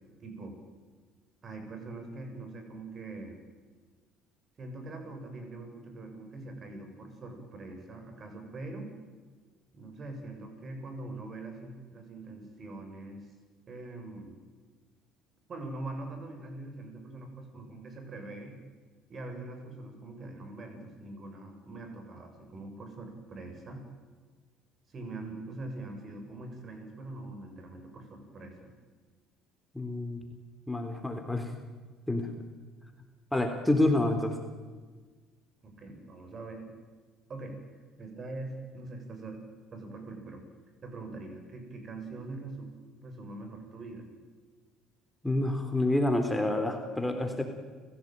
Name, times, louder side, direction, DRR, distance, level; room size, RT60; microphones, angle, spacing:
voice 1, 0.2-0.6 1.4-3.3 4.6-8.9 9.7-13.3 13.7-14.3 15.5-18.6 19.1-23.8 24.9-28.7 35.6-36.7 37.3-37.6 38.0-39.4 39.7-40.4 40.8-42.7 43.0-44.1, right 2 dB, 40° right, 5 dB, 7.4 m, -43 dB
voice 2, 29.7-30.2 30.7-31.5 32.1-32.3 33.3-34.4 45.2-47.4, left 1 dB, 5° left, 4 dB, 3.6 m, -28 dB
30.0 x 16.5 x 9.3 m, 1.4 s
hypercardioid pair, 70°, 0 cm